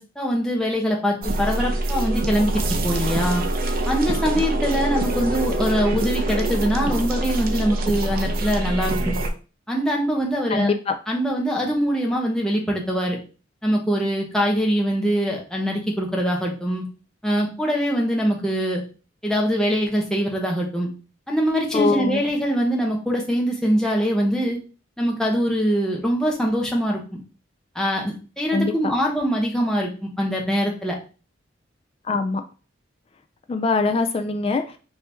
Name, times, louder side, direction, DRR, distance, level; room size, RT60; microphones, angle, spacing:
voice 1, 0.0-3.4 3.9-9.1 9.7-10.7 11.1-13.2 13.6-16.8 17.2-18.8 19.2-20.9 21.3-24.6 25.0-27.2 27.7-31.0, equal, 5° left, -2 dB, 0.9 m, -23 dB
sound 1, 1.2-9.3, right 1 dB, 50° right, 0.6 m, -24 dB
voice 2, 10.5-11.0 21.7-22.2 28.5-28.7 32.1-32.4 33.5-34.8, left 3 dB, 30° left, 8 dB, 0.3 m, -22 dB
4.3 x 2.8 x 3.4 m, 0.35 s
head